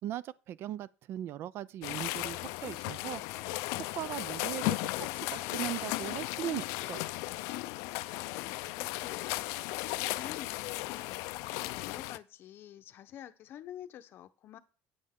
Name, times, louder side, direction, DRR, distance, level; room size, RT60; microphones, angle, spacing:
voice 1, 0.0-3.2 3.9-4.8 5.3-7.1, right 12 dB, 50° right, 0.3 m, -39 dB
sound 1, 1.8-12.2, left 20 dB, 80° left, 0.4 m, -36 dB
voice 2, 8.2-9.5 9.8-14.6, left 11 dB, 45° left, 0.7 m, -49 dB
9.5 x 7.7 x 3.6 m
cardioid pair, 150°, 5 cm